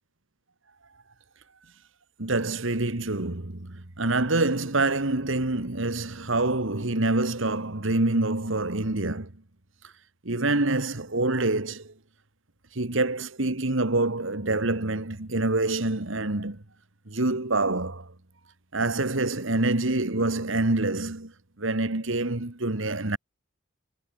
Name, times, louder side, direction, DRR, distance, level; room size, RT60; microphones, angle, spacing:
voice 1, 2.2-9.3 10.3-11.9 12.7-16.6 17.1-18.1 18.7-21.3 21.6-23.2, right 2 dB, 65° right, 1.9 m, -26 dB
head